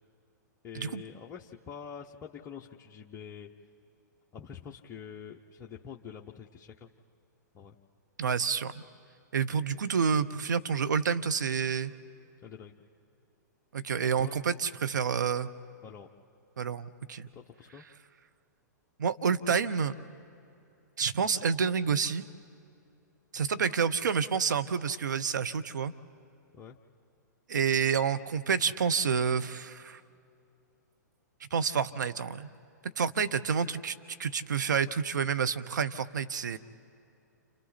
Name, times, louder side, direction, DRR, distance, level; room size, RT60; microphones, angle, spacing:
voice 1, 0.6-3.5 4.3-6.9 7.5-7.8 12.4-12.7 14.2-14.3 15.8-16.1 17.3-17.8 26.5-26.8, left 7 dB, 25° left, -1 dB, 0.9 m, -45 dB
voice 2, 8.2-8.8 9.3-11.9 13.7-15.5 16.6-17.3 19.0-19.9 21.0-22.2 23.3-25.9 27.5-30.0 31.5-32.5 33.0-36.6, right 6 dB, 75° right, 11 dB, 0.9 m, -29 dB
30.0 x 28.0 x 4.3 m, 2.6 s
hypercardioid pair, 120°, 10 cm